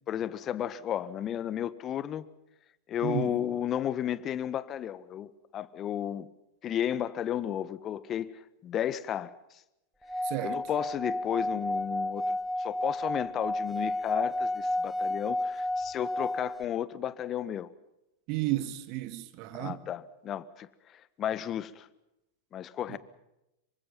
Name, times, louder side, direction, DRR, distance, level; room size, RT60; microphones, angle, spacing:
voice 1, 0.1-2.2 2.9-6.3 6.6-8.3 8.6-9.3 10.4-17.7 19.5-21.9 22.5-23.0, left 10 dB, 35° left, 1.5 m, -33 dB
voice 2, 3.0-3.4 10.2-10.6 18.3-19.8 22.9-23.0, right 15 dB, 50° right, 2.2 m, -33 dB
Singing / Glass, 10.0-16.6, left 1 dB, 5° right, 1.0 m, -32 dB
27.0 x 24.5 x 5.7 m
hypercardioid pair, 95°, 0 cm